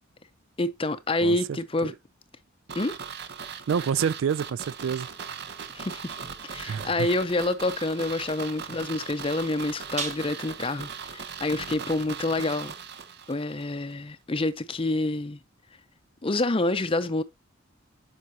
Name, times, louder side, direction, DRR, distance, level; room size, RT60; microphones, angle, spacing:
voice 1, 0.6-1.9 2.7-2.9 5.7-6.2 6.4-12.7 13.3-15.4 16.2-17.2, left 2 dB, 25° left, 0.6 m, -27 dB
voice 2, 1.2-1.9 3.7-5.1 6.7-7.1, right 7 dB, 65° right, 0.3 m, -28 dB
sound 1, 2.7-13.6 13.9-14.0, right 6 dB, 50° right, 0.8 m, -39 dB
sound 2, 4.9-11.7, right 4 dB, 35° right, 1.4 m, -44 dB
9.5 x 5.4 x 2.7 m
head